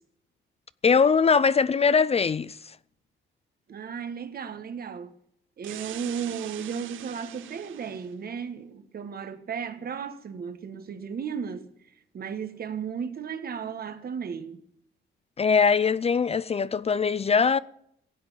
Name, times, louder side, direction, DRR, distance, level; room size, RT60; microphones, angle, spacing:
voice 1, 0.8-2.6 15.4-17.6, left 5 dB, 30° left, 0.5 m, -21 dB
voice 2, 3.7-5.1 5.6-11.7 12.1-14.6, right 7 dB, 50° right, 1.5 m, -35 dB
sound 1, 5.6-8.1, right 12 dB, 85° right, 0.9 m, -42 dB
16.5 x 8.0 x 7.2 m
cardioid pair, 90°, 20 cm